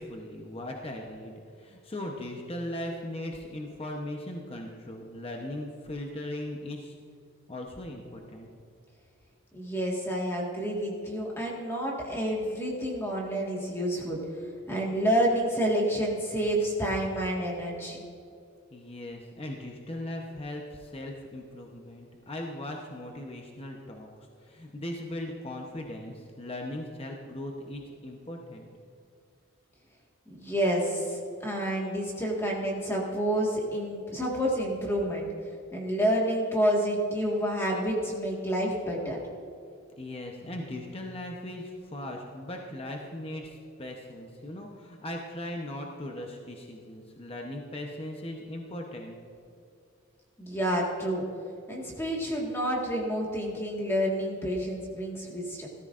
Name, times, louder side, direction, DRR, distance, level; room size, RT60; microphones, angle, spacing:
voice 1, 0.0-7.0 7.5-8.5 18.7-24.1 24.4-28.7 40.0-49.2, left 1 dB, 30° left, 1 dB, 0.8 m, -38 dB
voice 2, 9.5-14.2 14.7-18.0 30.3-35.3 35.7-39.2 50.4-51.2 51.7-55.7, equal, 10° left, -2 dB, 1.7 m, -29 dB
17.5 x 13.5 x 2.5 m, 2.4 s
head